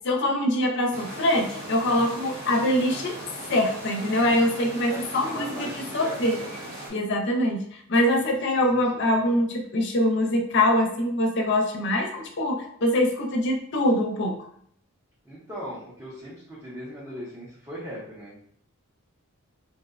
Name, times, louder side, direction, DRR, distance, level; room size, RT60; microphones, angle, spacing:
voice 1, 0.0-3.2 3.5-5.7 5.9-6.4 6.9-14.4, left 1 dB, 55° left, 2 dB, 0.4 m, -24 dB
sound 1, 0.9-6.9, right 1 dB, 45° right, 0.9 m, -38 dB
voice 2, 4.9-6.5 8.2-8.3 8.7-9.1 15.2-18.4, equal, 15° right, -9 dB, 0.6 m, -39 dB
2.6 x 2.0 x 2.4 m, 0.65 s
head